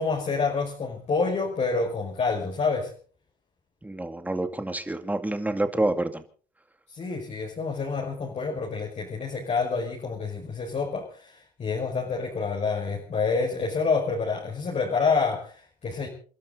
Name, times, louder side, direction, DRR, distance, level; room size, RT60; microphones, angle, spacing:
voice 1, 0.0-2.9 6.9-16.1, left 4 dB, 40° left, -1 dB, 5.3 m, -28 dB
voice 2, 3.8-6.2, right 2 dB, 10° right, 8 dB, 2.4 m, -28 dB
29.0 x 12.5 x 4.0 m, 0.43 s
cardioid pair, 110°, 17 cm